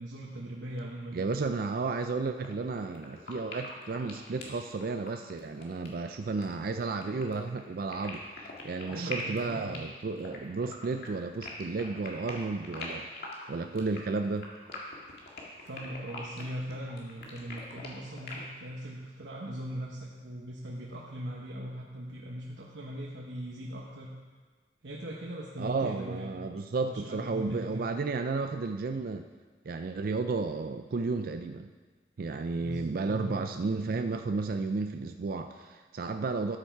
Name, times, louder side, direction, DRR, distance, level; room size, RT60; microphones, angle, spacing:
voice 1, 0.0-1.3 8.9-9.8 10.3-10.4 15.6-24.1 24.8-26.4 26.9-27.9 32.5-33.3, equal, 75° right, -3 dB, 1.1 m, -40 dB
voice 2, 1.1-13.1 13.5-14.5 25.6-29.2 29.6-31.7 32.2-36.6, right 4 dB, 55° right, 7 dB, 0.4 m, -33 dB
sound 1, 2.4-2.5 2.8-18.4, left 3 dB, 60° left, 2.0 m, -43 dB
13.0 x 7.1 x 4.6 m, 1.4 s
head